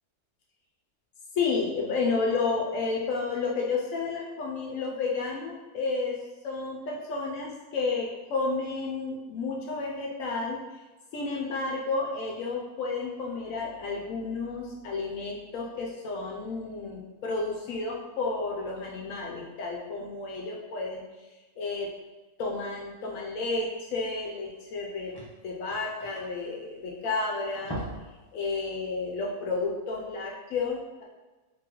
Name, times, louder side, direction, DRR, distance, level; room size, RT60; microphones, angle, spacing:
voice 1, 1.3-6.2 6.4-10.6 11.1-21.0 21.6-21.9 22.4-25.1 25.4-27.8 28.3-31.0, left 3 dB, 70° left, -1 dB, 0.9 m, -31 dB
sound 1, 24.4-24.5 24.7-27.1 27.4-28.2 28.5-28.7 29.1-29.2, equal, 25° left, 0.5 m, -40 dB
3.8 x 2.9 x 2.9 m, 1.2 s
omnidirectional pair, 1.7 m